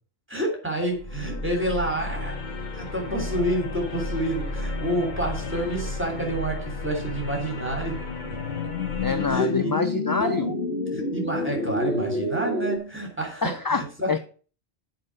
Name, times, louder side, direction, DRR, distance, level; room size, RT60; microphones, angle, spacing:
voice 1, 0.3-2.4 2.7-8.7 9.3-9.8 10.2-10.5 10.9-14.2, right 1 dB, 10° right, 3.4 m, -29 dB
sound 1, 0.9-9.3, left 2 dB, 45° left, 1.3 m, -33 dB
sound 2, 7.3-12.8, left 2 dB, 90° left, 1.9 m, -29 dB
voice 2, 9.0-10.5 13.4-14.2, left 4 dB, 25° left, 0.5 m, -26 dB
7.7 x 5.4 x 7.6 m
omnidirectional pair, 1.1 m